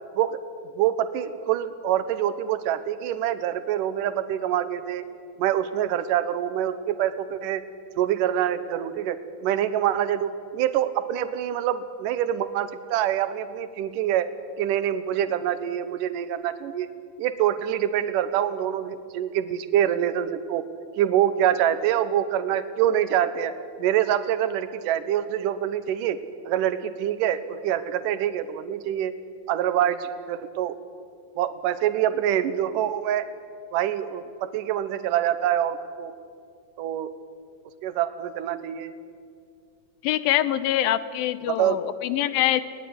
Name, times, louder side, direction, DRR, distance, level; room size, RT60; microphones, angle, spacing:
voice 1, 0.8-5.0 5.4-7.6 8.0-14.3 14.6-16.9 17.2-20.7 21.0-29.1 29.5-30.8 31.4-33.3 33.7-36.1 36.8-37.1 37.8-38.9 41.5-41.8, right 11 dB, 70° right, 12 dB, 2.5 m, -25 dB
voice 2, 40.0-42.6, left 13 dB, 80° left, 14 dB, 2.6 m, -24 dB
20.5 x 18.5 x 9.6 m, 2.2 s
omnidirectional pair, 4.2 m